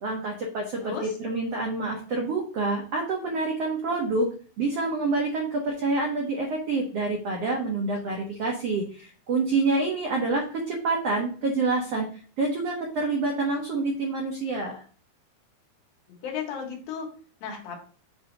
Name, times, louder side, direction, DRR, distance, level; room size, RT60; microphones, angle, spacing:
voice 1, 0.0-4.3 4.6-12.1 12.4-14.8, right 3 dB, 85° right, 0 dB, 1.3 m, -27 dB
voice 2, 0.8-1.1 16.1-17.1 17.4-17.8, left 7 dB, 70° left, 0 dB, 3.2 m, -35 dB
7.5 x 2.8 x 5.2 m, 0.42 s
omnidirectional pair, 4.4 m